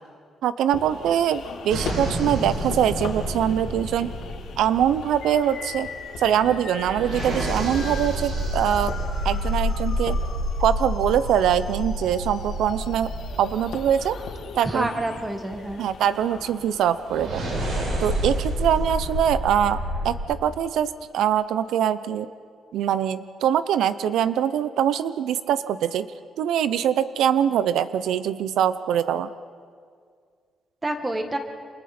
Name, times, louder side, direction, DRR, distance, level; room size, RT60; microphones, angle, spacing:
voice 1, 0.4-4.1 4.6-5.9 6.2-8.9 9.2-10.2 10.6-13.1 13.4-14.2 14.6-14.9 15.8-17.4 18.0-22.3 22.7-26.1 26.4-29.3, right 9 dB, 90° right, 13 dB, 0.6 m, -23 dB
sound 1, 0.7-19.4, left 5 dB, 85° left, 3.1 m, -41 dB
sound 2, 1.7-5.2 6.7-14.7 17.1-20.2, equal, 70° right, 7.6 m, -29 dB
sound 3, 5.2-15.2, left 6 dB, 65° left, 2.5 m, -41 dB
voice 2, 14.6-15.9 30.8-31.4, right 1 dB, 15° right, 5 dB, 1.8 m, -28 dB
29.0 x 27.5 x 4.4 m, 2.1 s
cardioid pair, 165°, 0 cm